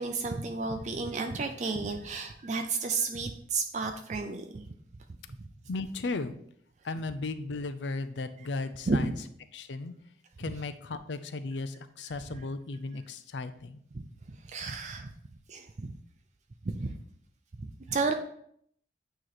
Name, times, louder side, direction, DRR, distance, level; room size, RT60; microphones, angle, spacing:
voice 1, 0.0-4.7 8.9-9.2 12.3-12.5 13.9-14.0 14.5-15.1 15.5-15.9 16.7-16.9 17.6-18.1, right 3 dB, 40° right, 5 dB, 0.4 m, -32 dB
voice 2, 5.7-6.4 6.8-9.2 9.5-9.9 10.4-13.8, left 3 dB, 85° left, 11 dB, 0.5 m, -35 dB
9.0 x 3.0 x 4.1 m, 0.66 s
head